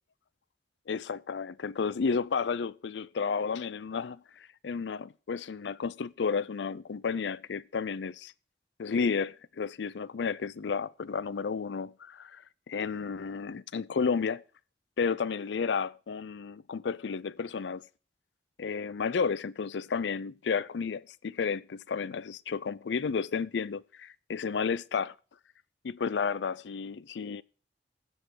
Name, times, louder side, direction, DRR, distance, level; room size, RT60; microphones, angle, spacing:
voice 1, 0.9-8.3 8.8-14.4 15.0-17.9 18.6-25.1 25.8-27.4, left 5 dB, 80° left, 0.5 m, -32 dB
16.0 x 5.4 x 6.2 m
head